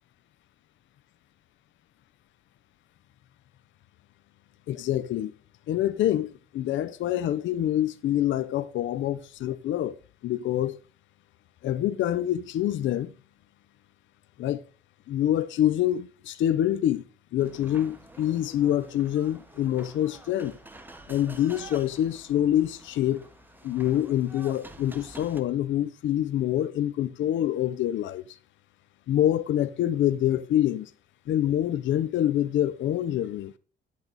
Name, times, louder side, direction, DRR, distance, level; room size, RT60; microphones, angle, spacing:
voice 1, 4.7-5.3 5.7-10.0 10.2-10.8 11.6-13.1 14.4-14.6 15.1-17.0 17.3-20.5 21.1-23.3 23.6-28.4 29.1-30.9 31.3-33.5, left 12 dB, 70° left, 0.6 m, -26 dB
sound 1, 17.4-25.4, right 1 dB, 10° right, 1.5 m, -48 dB
10.5 x 8.2 x 4.0 m
cardioid pair, 90°, 20 cm